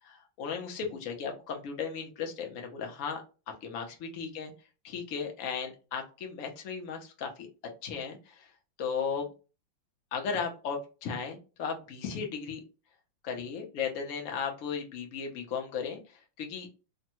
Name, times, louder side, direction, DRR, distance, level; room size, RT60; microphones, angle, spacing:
voice 1, 0.0-3.2 3.6-4.5 4.8-7.5 7.8-8.5 8.8-9.3 10.1-12.6 13.2-16.7, left 6 dB, 60° left, 3 dB, 0.9 m, -36 dB
3.4 x 2.1 x 2.9 m, 0.33 s
omnidirectional pair, 2.1 m